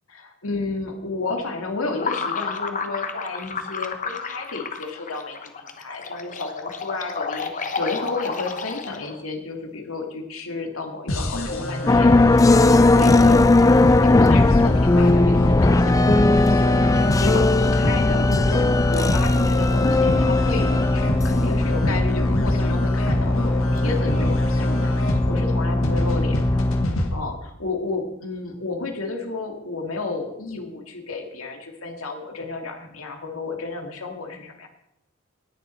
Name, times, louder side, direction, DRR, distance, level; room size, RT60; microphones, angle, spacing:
voice 1, 0.1-26.6 27.1-34.7, left 3 dB, 85° left, 3 dB, 2.0 m, -32 dB
sound 1, 2.0-9.2, left 5 dB, 40° left, 1.1 m, -31 dB
sound 2, 11.1-27.1, left 1 dB, 70° left, 1.6 m, -28 dB
sound 3, 11.9-26.9, left 2 dB, 15° left, 0.3 m, -18 dB
18.5 x 6.9 x 4.3 m, 0.88 s
head